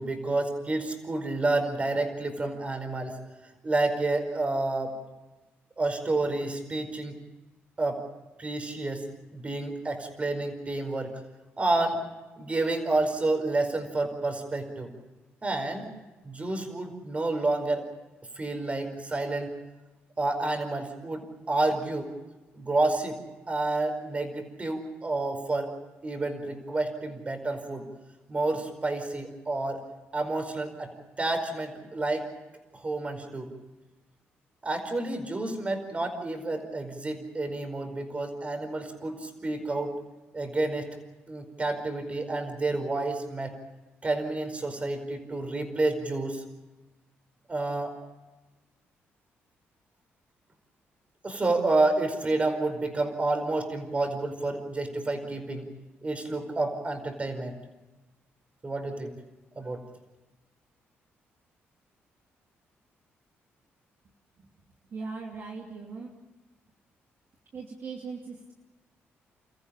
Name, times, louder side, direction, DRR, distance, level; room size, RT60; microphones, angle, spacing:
voice 1, 0.0-3.2 3.6-4.9 5.8-7.2 7.8-8.0 8.4-9.0 9.3-11.1 11.6-12.0 12.4-14.9 15.4-15.9 16.2-17.9 18.4-19.5 20.2-22.1 22.5-23.2 23.5-25.7 26.0-27.8 28.3-29.8 30.1-30.9 31.2-32.3 32.7-33.5 34.6-39.9 40.3-40.9 41.3-43.5 44.0-46.4 47.5-47.9 51.2-55.7 56.0-57.5 58.6-59.1 59.5-59.8, right 2 dB, 30° right, 6 dB, 4.9 m, -29 dB
voice 2, 64.9-66.1 67.5-68.5, right 4 dB, 50° right, 0 dB, 2.8 m, -39 dB
30.0 x 14.5 x 8.8 m, 1.1 s
cardioid pair, 85°, 5 cm